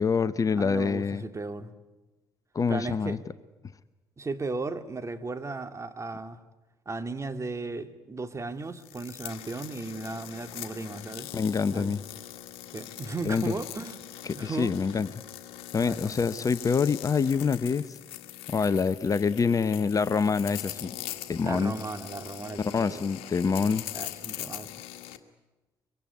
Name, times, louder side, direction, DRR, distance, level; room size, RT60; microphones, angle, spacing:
voice 1, 0.0-1.2 2.5-3.2 11.3-12.0 13.3-13.5 14.3-15.1 15.7-18.0 18.5-21.0 21.3-21.7 22.6-23.9, left 5 dB, 30° left, 15 dB, 0.9 m, -26 dB
voice 2, 0.6-1.7 2.7-3.2 4.2-6.4 6.9-11.3 11.7-11.9 12.7-14.0 14.3-14.7 15.8-16.2 21.4-23.0 23.9-24.7, right 3 dB, 25° right, 8 dB, 2.4 m, -36 dB
sound 1, 8.8-25.2, left 13 dB, 65° left, 1.7 m, -42 dB
24.0 x 24.0 x 9.6 m, 1.1 s
figure-of-eight pair, 50°, 11 cm